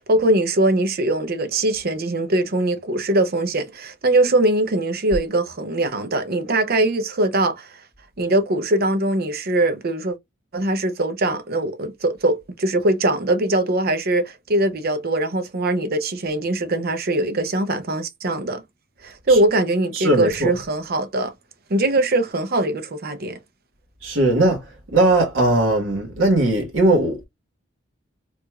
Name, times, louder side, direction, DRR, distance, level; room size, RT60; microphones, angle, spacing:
voice 1, 0.0-7.8 8.2-10.2 10.5-18.6 19.0-21.3 21.7-23.4, right 1 dB, 50° right, 0.7 m, -21 dB
voice 2, 19.9-20.6 24.0-27.2, right 2 dB, 75° right, 1.4 m, -19 dB
4.5 x 2.5 x 2.3 m
head